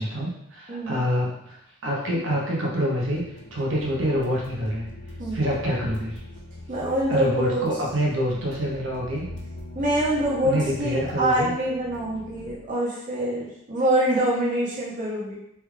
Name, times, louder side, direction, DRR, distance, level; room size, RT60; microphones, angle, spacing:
voice 1, 0.0-1.6 1.8-3.2 3.5-4.9 5.3-6.2 7.1-9.3 10.4-11.5, equal, 70° right, -3 dB, 0.7 m, -26 dB
voice 2, 0.7-1.0 5.2-5.4 6.7-7.6 9.7-15.4, right 1 dB, 40° right, -5 dB, 0.7 m, -25 dB
sound 1, 3.0-12.5, left 1 dB, 60° left, 0.5 m, -41 dB
3.3 x 3.0 x 2.3 m, 0.77 s
head